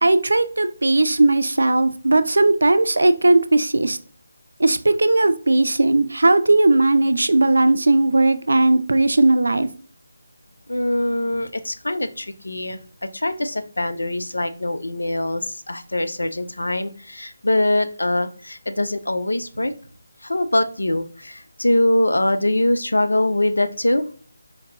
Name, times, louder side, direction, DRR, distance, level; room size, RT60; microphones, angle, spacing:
voice 1, 0.0-4.0 4.6-9.7, right 2 dB, 75° right, 11 dB, 0.4 m, -17 dB
voice 2, 10.7-19.7 20.2-24.1, left 1 dB, 85° left, 10 dB, 0.5 m, -23 dB
4.4 x 2.8 x 2.5 m, 0.41 s
figure-of-eight pair, 155°, 0 cm